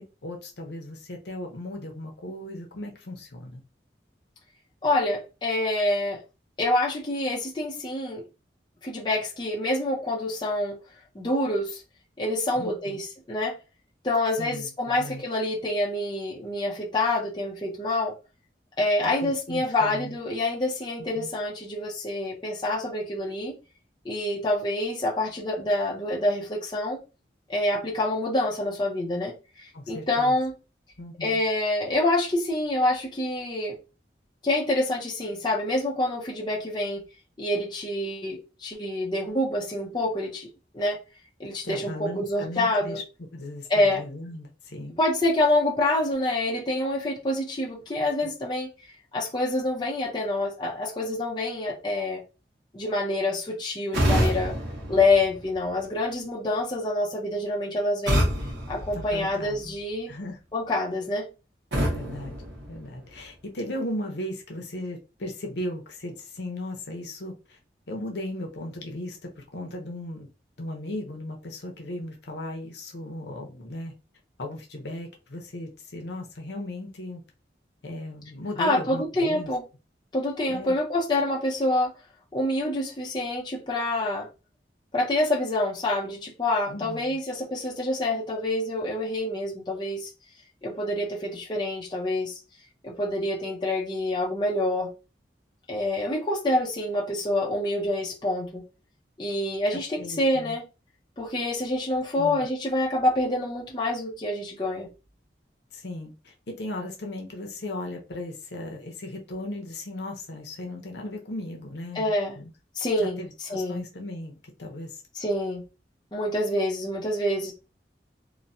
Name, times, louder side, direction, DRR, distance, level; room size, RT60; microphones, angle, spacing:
voice 1, 0.0-3.6 12.5-13.0 14.4-15.2 19.2-20.2 21.1-21.3 29.7-30.4 31.0-31.4 41.6-43.0 43.3-45.0 48.2-48.3 58.9-59.8 60.1-60.4 61.8-62.4 62.7-67.6 67.9-70.3 70.6-73.9 74.4-77.2 77.8-79.5 80.5-80.8 86.7-87.2 99.7-100.6 102.1-102.5 105.7-112.5 113.0-114.3 114.6-115.0, left 1 dB, 75° left, 0.8 m, -37 dB
voice 2, 4.8-6.2 6.6-8.2 8.8-10.8 11.1-11.8 12.2-13.5 14.0-18.1 18.8-23.6 24.0-27.0 27.5-30.6 31.2-33.8 34.4-37.0 37.4-40.5 40.7-41.0 41.4-43.0 43.7-44.0 45.0-48.7 49.1-52.2 52.7-54.5 54.9-58.3 58.7-60.1 60.5-61.3 78.6-79.6 80.1-81.9 82.3-84.3 84.9-90.1 90.6-92.4 92.8-94.9 95.7-98.6 99.2-100.6 101.2-104.9 111.9-112.4 112.8-113.8 115.2-115.6 116.1-117.5, left 1 dB, 25° left, 0.6 m, -27 dB
sound 1, 53.9-55.9 58.1-59.8 61.7-63.3, equal, 85° right, 1.0 m, -28 dB
3.0 x 2.1 x 2.6 m
head